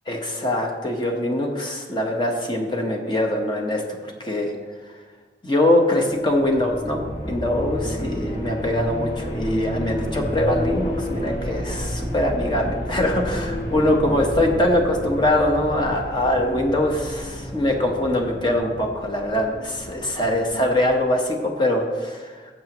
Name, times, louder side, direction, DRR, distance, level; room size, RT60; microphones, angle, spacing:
voice 1, 0.1-4.5 5.4-22.6, left 1 dB, 25° left, 1 dB, 1.2 m, -23 dB
sound 1, 6.2-21.0, equal, 45° left, 1.9 m, -31 dB
17.5 x 7.7 x 3.1 m, 1.5 s
head